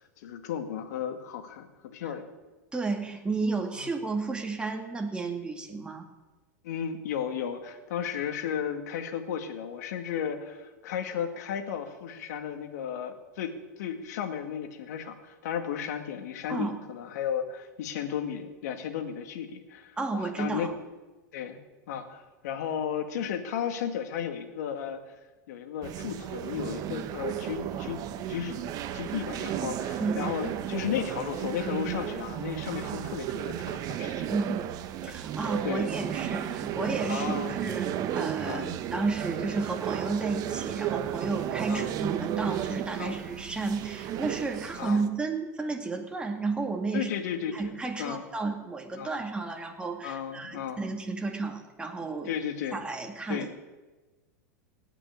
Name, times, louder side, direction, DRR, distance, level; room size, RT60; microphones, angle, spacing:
voice 1, 0.2-2.2 3.8-3.9 6.6-20.8 21.3-21.6 21.9-25.2 25.5-28.0 28.3-28.6 28.9-34.4 35.6-35.9 37.1-37.6 38.4-38.8 41.7-41.9 43.0-43.2 44.8-45.0 46.9-48.2 48.9-49.1 50.0-50.8 52.2-52.8 53.3-53.5, left 8 dB, 70° left, 6 dB, 1.9 m, -34 dB
voice 2, 2.7-6.1 16.5-16.8 20.0-20.7 30.0-30.3 34.3-34.7 35.0-37.9 38.2-47.1 47.5-52.3 52.7-53.6, right 3 dB, 10° right, 2 dB, 2.3 m, -32 dB
sound 1, 25.8-45.1, right 11 dB, 45° right, 1.1 m, -34 dB
17.5 x 6.1 x 9.8 m, 1.2 s
hypercardioid pair, 100°, 9 cm